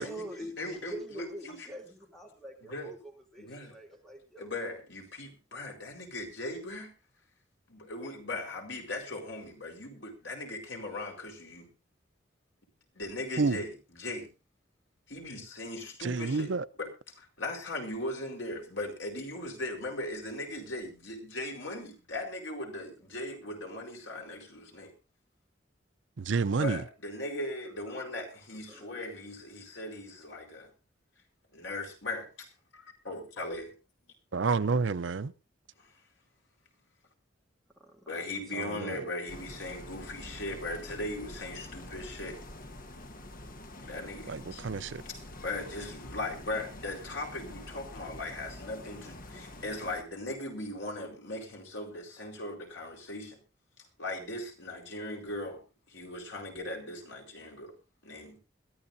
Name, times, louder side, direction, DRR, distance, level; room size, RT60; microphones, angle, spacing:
voice 1, 0.0-4.6 28.3-29.0 37.7-38.2 38.5-38.7, right 1 dB, ahead, 2.9 m, -45 dB
voice 2, 0.6-1.7 2.7-2.9 3.4-3.7 4.4-6.9 7.7-11.7 12.9-14.3 15.1-16.5 16.8-16.9 17.2-24.9 26.6-30.7 31.5-32.5 32.7-33.7 35.8-35.9 38.1-42.4 43.8-44.6 45.1-53.4 54.0-55.6 55.9-57.8 58.0-58.4, left 1 dB, 85° left, 4.5 m, -39 dB
voice 3, 16.0-16.7 26.2-26.8 34.3-35.3 38.5-39.0 44.3-45.0, right 4 dB, 85° right, 0.6 m, -29 dB
sound 1, 39.3-50.0, left 1 dB, 50° left, 1.3 m, -46 dB
21.5 x 13.5 x 2.7 m
head